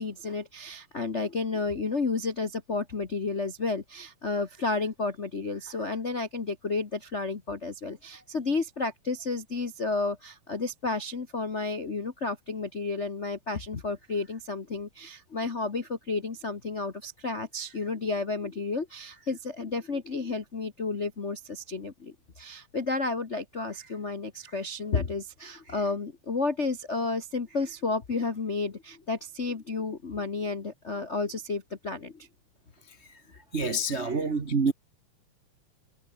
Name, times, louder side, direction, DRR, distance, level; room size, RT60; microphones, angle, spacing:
voice 1, 0.0-32.3 34.0-34.3, left 3 dB, 60° left, 0.7 m, -32 dB
voice 2, 32.9-33.2 33.5-34.7, right 3 dB, 75° right, 0.6 m, -28 dB
omnidirectional pair, 3.8 m